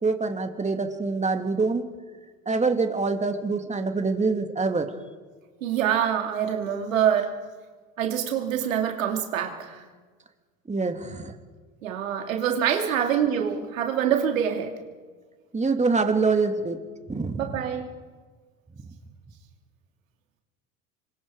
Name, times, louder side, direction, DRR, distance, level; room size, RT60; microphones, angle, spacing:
voice 1, 0.0-1.9 2.5-4.9 10.7-11.3 15.5-16.8 17.1-17.6, right 4 dB, 20° right, 6 dB, 2.4 m, -25 dB
voice 2, 5.6-7.4 8.0-9.8 11.8-14.7 17.4-17.9, right 9 dB, 85° right, 3 dB, 2.6 m, -25 dB
26.0 x 23.5 x 4.8 m, 1.5 s
hypercardioid pair, 75°, 39 cm